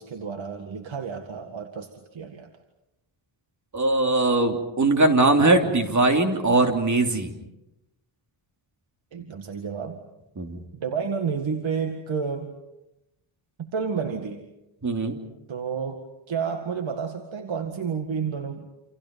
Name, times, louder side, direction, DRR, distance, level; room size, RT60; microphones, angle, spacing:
voice 1, 0.0-2.5 9.1-10.0 10.8-12.5 13.6-14.4 15.5-18.7, right 6 dB, 65° right, 5 dB, 2.0 m, -30 dB
voice 2, 3.7-7.3 10.4-10.6 14.8-15.2, right 2 dB, 35° right, 4 dB, 3.1 m, -21 dB
29.0 x 28.0 x 5.4 m, 0.92 s
wide cardioid pair, 135°, 50 cm